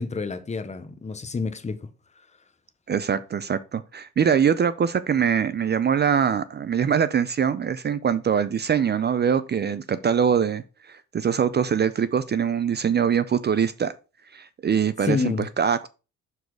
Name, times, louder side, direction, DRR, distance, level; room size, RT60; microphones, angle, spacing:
voice 1, 0.0-1.9 15.0-15.5, left 4 dB, 25° left, 0.9 m, -28 dB
voice 2, 2.9-13.9 14.3-15.2 15.6-15.9, right 7 dB, 35° right, 0.5 m, -23 dB
6.7 x 4.1 x 4.7 m
cardioid pair, 90°, 30 cm